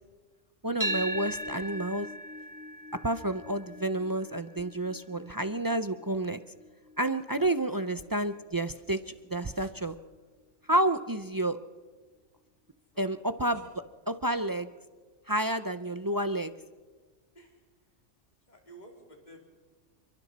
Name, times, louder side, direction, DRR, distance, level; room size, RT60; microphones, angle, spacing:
voice 1, 0.6-2.1 3.0-6.4 7.0-9.9 10.7-11.6 13.0-13.6 14.1-14.7 15.3-16.5, right 1 dB, 35° right, 10 dB, 0.3 m, -30 dB
sound 1, 0.8-9.0, right 1 dB, 15° right, 1.4 m, -40 dB
voice 2, 18.5-19.4, right 1 dB, 35° left, 0 dB, 3.5 m, -52 dB
28.5 x 23.5 x 4.2 m, 1.4 s
omnidirectional pair, 1.3 m